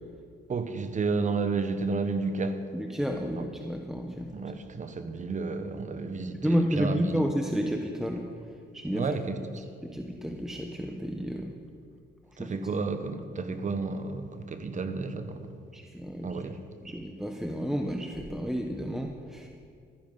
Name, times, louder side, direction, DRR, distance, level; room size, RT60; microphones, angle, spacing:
voice 1, 0.5-2.7 3.4-3.5 4.3-7.1 8.9-9.6 12.4-15.5 16.2-16.6, right 4 dB, 40° right, 1.3 m, -31 dB
voice 2, 2.7-4.3 6.4-9.1 9.9-11.5 12.4-12.5 15.7-16.4 16.8-19.5, equal, ahead, 1.1 m, -31 dB
15.0 x 13.5 x 5.4 m
cardioid pair, 90°, 20 cm